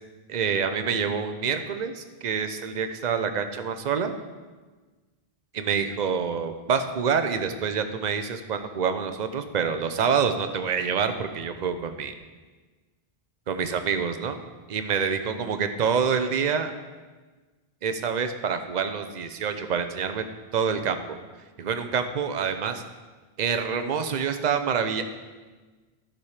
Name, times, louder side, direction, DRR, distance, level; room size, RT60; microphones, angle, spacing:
voice 1, 0.3-4.1 5.5-12.1 13.5-14.4 14.7-16.7 17.8-20.2 20.5-21.2 21.6-22.8 23.4-25.0, right 6 dB, 50° right, 8 dB, 0.8 m, -27 dB
12.0 x 7.2 x 4.9 m, 1.3 s
omnidirectional pair, 1.0 m